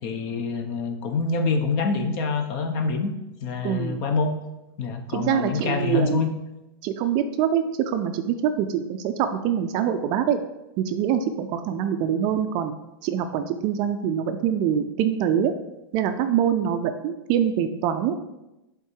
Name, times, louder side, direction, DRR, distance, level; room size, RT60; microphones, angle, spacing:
voice 1, 0.0-3.1 3.4-4.3 4.8-6.3, left 4 dB, 40° left, 5 dB, 0.9 m, -26 dB
voice 2, 3.6-4.0 5.1-6.2 6.8-10.4 10.8-12.7 13.0-15.5 15.9-18.1, right 9 dB, 35° right, 8 dB, 0.4 m, -24 dB
8.0 x 3.7 x 4.6 m, 0.96 s
supercardioid pair, 145°, 13 cm